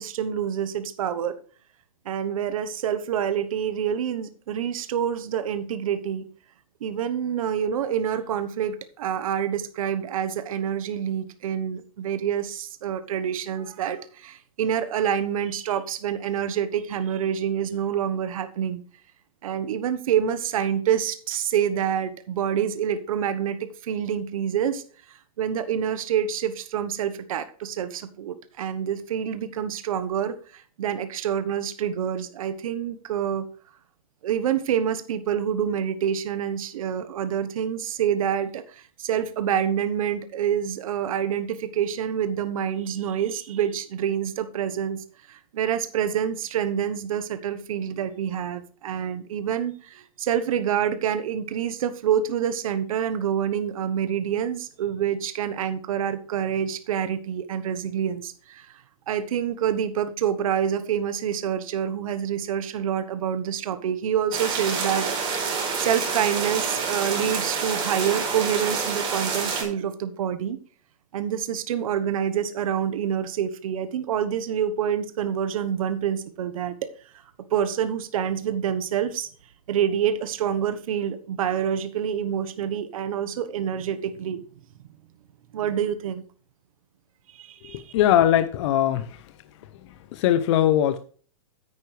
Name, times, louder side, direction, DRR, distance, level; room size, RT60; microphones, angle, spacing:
voice 1, 0.0-1.4 2.0-6.3 6.8-18.8 19.4-24.8 25.1-33.5 34.2-65.1 65.3-70.6 71.1-76.9 77.5-79.3 79.7-84.4 85.5-86.2 87.3-87.9, right 9 dB, 70° right, 11 dB, 1.2 m, -27 dB
sound 1, 64.3-69.6, right 5 dB, 30° right, 4.6 m, -27 dB
voice 2, 87.7-89.3 90.1-91.0, left 11 dB, 55° left, 11 dB, 0.8 m, -21 dB
9.7 x 9.2 x 3.3 m, 0.42 s
hypercardioid pair, 145°, 18 cm